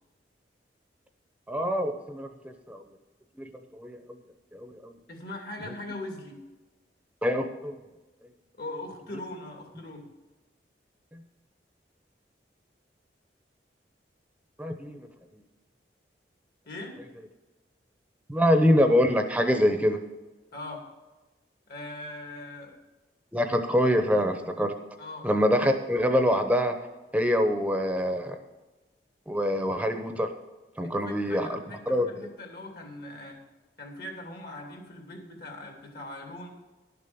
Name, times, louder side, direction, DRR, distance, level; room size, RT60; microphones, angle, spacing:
voice 1, 1.5-2.8 3.4-4.0 4.5-4.9 7.2-7.8 11.1-11.2 14.6-15.1 18.3-20.0 23.3-24.7 25.2-26.7 27.1-28.4 29.3-30.3 30.8-31.6 31.9-32.3, equal, 10° right, 6 dB, 0.8 m, -25 dB
voice 2, 5.1-6.4 8.6-10.1 16.7-17.0 20.5-20.8 21.7-22.8 25.0-25.3 30.8-33.4 33.8-36.5, left 2 dB, 60° left, 2 dB, 2.6 m, -40 dB
11.5 x 6.8 x 7.0 m, 1.1 s
head